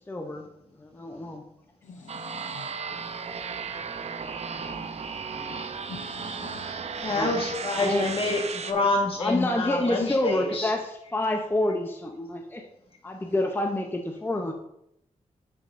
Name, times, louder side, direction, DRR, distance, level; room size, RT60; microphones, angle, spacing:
voice 1, 0.1-0.4 0.8-1.4 4.7-4.9 5.4-5.6 7.0-7.3 7.8-8.1 9.2-12.7 13.0-14.5, left 1 dB, 15° left, 0.5 m, -28 dB
voice 2, 1.8-2.8 3.0-3.8 5.4-6.7 7.0-7.3 13.1-13.3, left 4 dB, 65° left, 0.6 m, -47 dB
sound 1, 2.1-8.7, right 5 dB, 55° right, 0.5 m, -35 dB
voice 3, 7.0-10.7, left 2 dB, 45° left, 1.4 m, -27 dB
9.5 x 5.6 x 2.5 m
wide cardioid pair, 135°, 13 cm